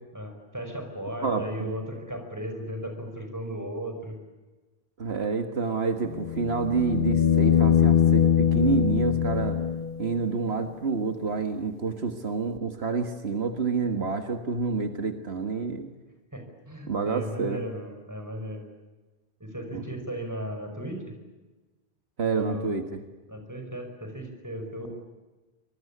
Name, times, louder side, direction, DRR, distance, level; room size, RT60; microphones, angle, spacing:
voice 1, 0.1-4.2 5.1-5.3 16.3-18.7 19.4-21.1 22.3-22.8 23.3-24.9, equal, 15° right, 5 dB, 5.5 m, -36 dB
voice 2, 1.2-1.7 5.0-9.6 10.0-15.9 16.9-17.6 19.7-19.8 22.2-22.9, right 5 dB, 75° right, 7 dB, 1.9 m, -28 dB
sound 1, 6.1-10.2 12.6-12.7, left 9 dB, 60° left, 1.1 m, -22 dB
26.0 x 21.0 x 8.6 m, 1.2 s
omnidirectional pair, 1.1 m